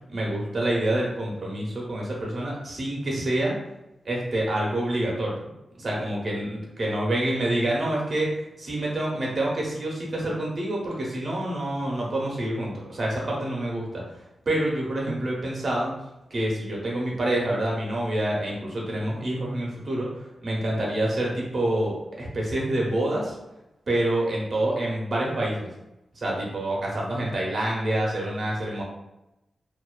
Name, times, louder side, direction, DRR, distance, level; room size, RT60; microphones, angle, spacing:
voice 1, 0.1-3.5 4.0-5.5 5.8-8.3 8.6-14.0 14.5-15.9 16.3-23.3 23.9-25.7 26.2-28.8, right 1 dB, 60° right, -3 dB, 0.8 m, -27 dB
2.5 x 2.3 x 2.2 m, 0.90 s
cardioid pair, 60°, 0 cm